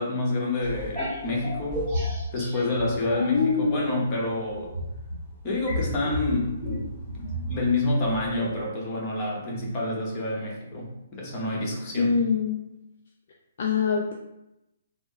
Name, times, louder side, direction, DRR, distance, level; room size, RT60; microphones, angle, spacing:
voice 1, 0.0-1.9 2.3-4.7 5.4-6.6 7.5-12.2, left 2 dB, 30° left, -3 dB, 0.9 m, -28 dB
sound 1, 0.6-3.5 3.8-8.6, equal, 15° right, 1.5 m, -33 dB
voice 2, 3.2-3.9 11.9-12.6 13.6-14.1, left 5 dB, 50° left, -1 dB, 0.3 m, -24 dB
3.5 x 2.1 x 2.7 m, 0.90 s
figure-of-eight pair, 130°, 0 cm